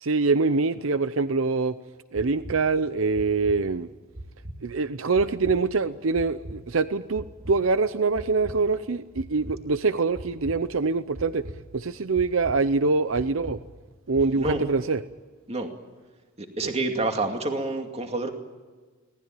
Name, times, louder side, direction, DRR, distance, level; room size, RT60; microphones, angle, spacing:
voice 1, 0.0-1.8 2.1-3.9 4.6-11.4 11.7-13.6 14.1-15.0 16.6-16.7, right 4 dB, 85° right, 13 dB, 0.7 m, -24 dB
sound 1, 2.1-2.6 3.1-3.6 4.1-4.6 5.1-5.6 6.1-6.6 7.1-7.6 8.1-8.6 9.1-9.6 10.1-10.6 11.1-11.6 12.1-12.6 13.1-13.6 14.1-14.6, right 1 dB, 55° right, 2.7 m, -38 dB
voice 2, 16.4-18.3, right 2 dB, 30° right, 4 dB, 2.4 m, -28 dB
25.0 x 19.0 x 9.0 m, 1.4 s
head